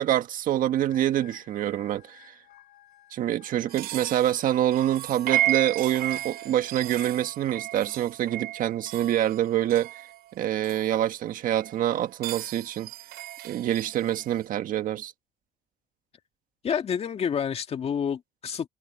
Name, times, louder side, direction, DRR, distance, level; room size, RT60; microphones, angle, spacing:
voice 1, 0.0-2.2 3.1-10.0 10.3-12.9 13.4-15.1, right 12 dB, 60° right, 1.6 m, -26 dB
sound 1, 0.9-7.3, left 13 dB, 65° left, 6.1 m, -53 dB
sound 2, 3.7-10.8 11.5-14.4, right 13 dB, 75° right, 4.1 m, -34 dB
voice 2, 16.6-18.7, left 7 dB, 40° left, 2.2 m, -28 dB
cardioid pair, 110°, 16 cm